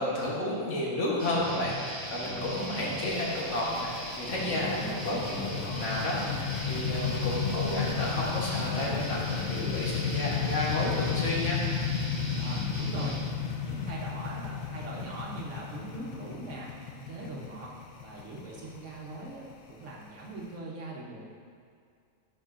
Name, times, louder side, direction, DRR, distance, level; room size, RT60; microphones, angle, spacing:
voice 1, 0.0-11.6, left 1 dB, 60° left, -5 dB, 1.5 m, -32 dB
sound 1, 1.2-13.2, equal, 15° right, 1.1 m, -39 dB
sound 2, 1.7-20.5, left 7 dB, 80° left, 1.1 m, -34 dB
voice 2, 12.4-13.2 13.6-17.7 18.0-19.4 19.7-21.2, right 2 dB, 60° right, -3 dB, 1.3 m, -41 dB
10.5 x 5.0 x 2.5 m, 2.2 s
omnidirectional pair, 1.4 m